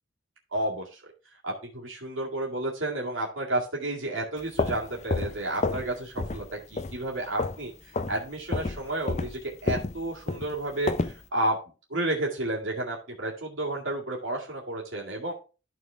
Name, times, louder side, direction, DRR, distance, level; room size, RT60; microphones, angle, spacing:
voice 1, 0.5-1.0 1.4-6.4 6.7-7.7 8.1-11.6 11.9-15.3, right 1 dB, 75° right, -2 dB, 2.1 m, -31 dB
sound 1, 4.4-5.9 6.2-6.5 6.8-7.7 7.9-8.2 8.5-11.2, left 3 dB, 35° left, 0.5 m, -30 dB
13.0 x 4.3 x 3.4 m, 0.34 s
head